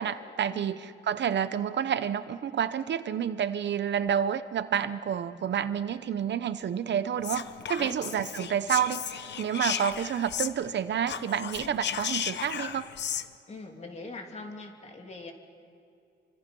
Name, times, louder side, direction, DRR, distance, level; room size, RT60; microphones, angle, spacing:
voice 1, 0.0-12.9, right 8 dB, 65° right, 12 dB, 0.8 m, -29 dB
Whispering, 7.2-10.8 11.0-13.3, left 8 dB, 60° left, 0.9 m, -35 dB
voice 2, 13.5-15.3, left 3 dB, 35° left, 2 dB, 3.0 m, -42 dB
29.5 x 25.0 x 5.4 m, 2.5 s
wide cardioid pair, 140°, 20 cm